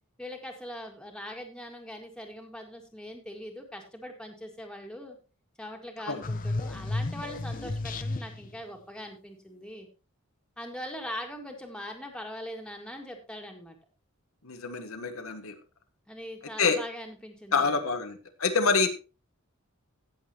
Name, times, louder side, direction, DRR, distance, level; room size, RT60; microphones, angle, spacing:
voice 1, 0.2-5.2 5.6-9.9 10.6-13.8 16.1-17.8, equal, 5° left, 2 dB, 1.9 m, -41 dB
sound 1, 6.2-8.6, left 2 dB, 40° left, 0.7 m, -32 dB
voice 2, 14.4-15.5 16.6-16.8 17.5-18.9, left 4 dB, 90° left, 6 dB, 1.4 m, -27 dB
16.5 x 7.0 x 3.0 m, 0.31 s
head